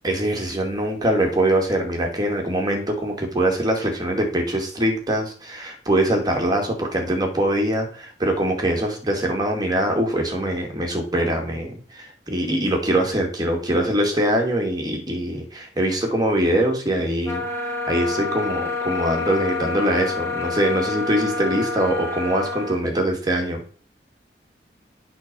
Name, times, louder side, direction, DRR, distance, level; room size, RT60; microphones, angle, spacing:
voice 1, 0.0-17.4 17.9-23.6, right 1 dB, 25° right, 1 dB, 2.2 m, -23 dB
sound 1, 17.2-22.8, left 3 dB, 15° left, 1.9 m, -28 dB
8.4 x 4.3 x 6.9 m, 0.42 s
head